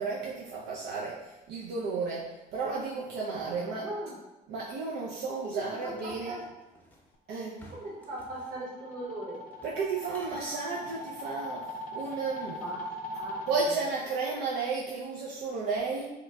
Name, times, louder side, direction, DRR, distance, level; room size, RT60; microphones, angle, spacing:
voice 1, 0.0-3.8 4.5-6.3 7.3-7.6 9.6-12.6 13.5-16.1, right 4 dB, 85° right, -4 dB, 0.5 m, -33 dB
voice 2, 3.6-4.2 5.4-6.4 7.7-9.4 12.5-12.8 13.1-13.5, right 1 dB, 55° right, -6 dB, 1.5 m, -39 dB
sound 1, 5.8-7.1 7.6-8.6 9.5-9.8 10.1-10.6, left 1 dB, 10° left, 0.7 m, -52 dB
sound 2, 7.5-13.7, equal, 50° left, 0.4 m, -40 dB
3.0 x 2.2 x 3.4 m, 1.1 s
cardioid pair, 110°, 17 cm